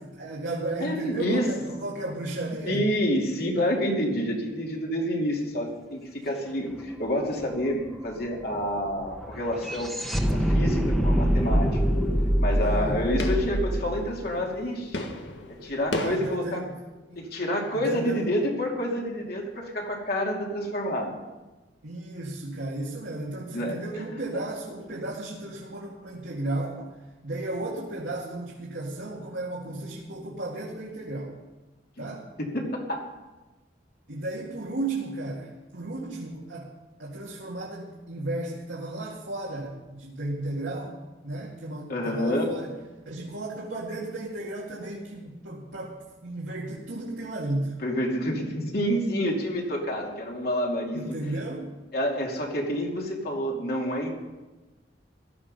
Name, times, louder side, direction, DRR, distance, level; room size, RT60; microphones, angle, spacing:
voice 1, 0.1-2.9 12.6-13.2 16.0-16.8 17.1-17.2 17.8-18.2 21.8-27.0 27.2-31.4 32.0-32.3 34.1-36.7 37.0-41.0 41.2-42.7 43.1-47.8 50.9-51.7, right 2 dB, 85° right, -4 dB, 2.2 m, -34 dB
voice 2, 0.8-1.5 2.7-9.9 10.3-11.7 12.4-15.1 15.5-16.7 17.2-21.2 23.5-23.8 24.3-24.4 32.0-32.1 32.4-33.1 41.9-42.5 47.8-51.1 51.9-54.1, equal, 55° left, -1 dB, 2.6 m, -28 dB
sound 1, 6.7-6.8 7.1-15.3, equal, ahead, 1.2 m, -26 dB
sound 2, 9.9-10.3 10.6-16.4, left 1 dB, 85° left, 1.6 m, -36 dB
15.5 x 12.5 x 5.4 m, 1.2 s
head